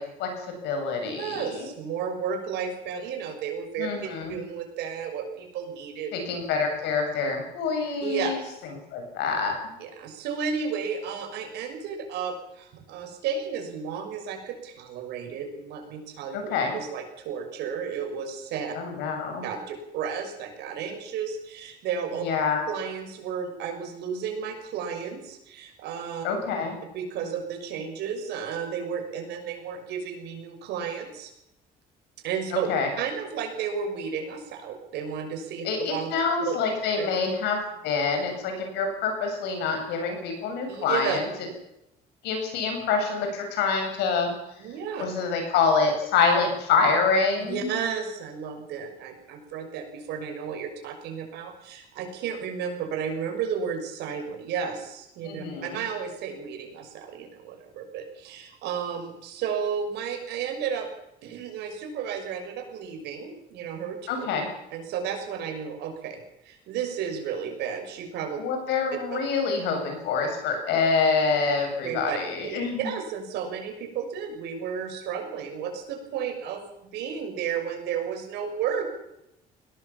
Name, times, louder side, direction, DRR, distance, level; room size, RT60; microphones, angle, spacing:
voice 1, 0.0-1.7 3.8-4.4 6.1-8.4 8.9-9.7 16.3-16.8 18.7-19.4 22.2-22.6 26.2-26.8 32.5-32.9 35.6-41.3 42.2-44.3 45.0-47.8 55.2-55.8 64.1-64.5 68.4-72.9, left 5 dB, 85° left, 4 dB, 7.8 m, -26 dB
voice 2, 1.2-6.1 8.0-8.3 9.8-18.7 19.4-22.2 22.7-26.2 26.9-31.3 32.2-32.7 33.0-36.1 36.4-36.5 37.0-37.1 40.7-41.2 44.6-45.0 47.5-60.9 61.2-64.3 64.7-66.2 66.4-68.4 69.1-69.2 71.8-72.2 72.4-76.6 76.9-78.9, right 7 dB, 80° right, 4 dB, 6.3 m, -33 dB
21.5 x 18.0 x 7.4 m, 0.84 s
cardioid pair, 110°, 17 cm